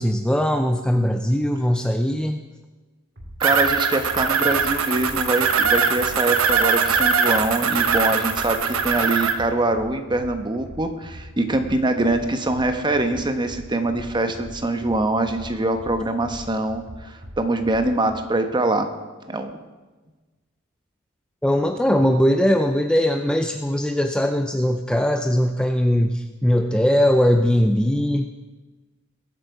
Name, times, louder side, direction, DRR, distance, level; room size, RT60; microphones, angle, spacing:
voice 1, 0.0-2.4 21.4-28.3, equal, 5° left, 6 dB, 0.5 m, -20 dB
sound 1, 3.2-18.2, equal, 55° right, 2.5 m, -41 dB
voice 2, 3.4-18.9 19.3-19.5, right 2 dB, 20° right, 7 dB, 1.1 m, -23 dB
sound 2, 3.4-9.3, right 5 dB, 80° right, 1.1 m, -21 dB
21.0 x 8.3 x 4.8 m, 1.2 s
head